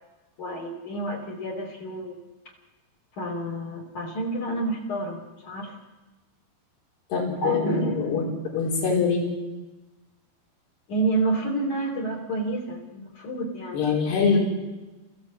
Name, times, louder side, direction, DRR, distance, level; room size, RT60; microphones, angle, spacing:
voice 1, 0.4-2.2 3.2-5.8 7.4-8.1 10.9-13.8, right 2 dB, 50° left, 1 dB, 4.4 m, -29 dB
voice 2, 7.1-8.2 8.5-9.3 13.7-14.4, left 5 dB, 70° left, -3 dB, 6.6 m, -23 dB
30.0 x 16.0 x 8.4 m, 1.2 s
omnidirectional pair, 4.9 m